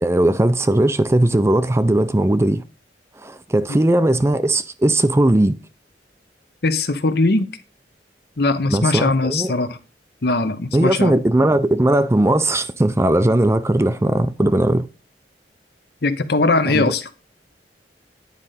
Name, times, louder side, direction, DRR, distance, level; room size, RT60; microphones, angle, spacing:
voice 1, 0.0-2.6 3.2-5.6 8.7-9.5 10.7-14.9 16.7-16.9, right 1 dB, 15° right, 0.4 m, -18 dB
voice 2, 6.6-7.5 8.4-9.8 10.2-11.2 16.0-17.1, left 3 dB, 60° left, 0.9 m, -20 dB
9.7 x 5.0 x 4.1 m
head